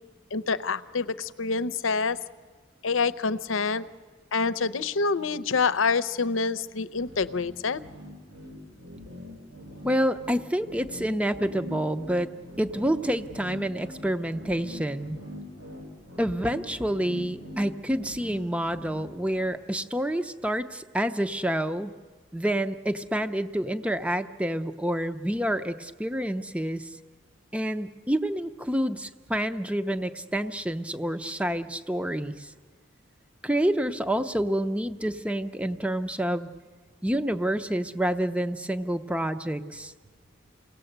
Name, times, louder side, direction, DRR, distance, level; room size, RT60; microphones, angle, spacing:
voice 1, 0.3-2.2 2.8-3.8 4.3-7.8, left 4 dB, 85° left, 14 dB, 0.7 m, -27 dB
sound 1, 6.9-19.5, left 1 dB, 90° right, 6.6 m, -43 dB
voice 2, 9.8-12.3 12.6-15.2 16.2-22.0 22.3-27.0 27.5-32.5 33.4-36.5 37.0-39.9, right 1 dB, 5° right, 10 dB, 0.7 m, -28 dB
28.5 x 18.5 x 8.0 m, 1.5 s
head